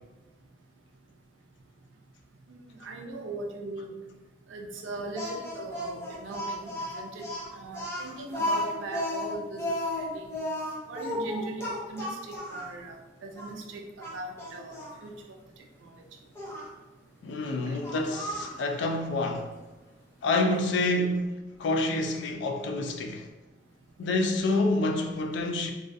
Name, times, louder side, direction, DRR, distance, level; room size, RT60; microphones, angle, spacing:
voice 1, 2.5-3.9 4.5-7.2 7.5-10.3 10.9-13.8 14.1-15.1 15.8-15.9 17.7-17.8, right 2 dB, 75° right, 0.4 m, -40 dB
Speech, 5.2-12.7 13.4-13.5 14.0-14.9 16.4-16.7 17.8-18.6, left 1 dB, 15° left, 0.5 m, -33 dB
voice 2, 17.2-19.5 20.2-23.3 24.0-25.7, left 2 dB, 65° left, 0.3 m, -28 dB
2.3 x 2.3 x 2.5 m
head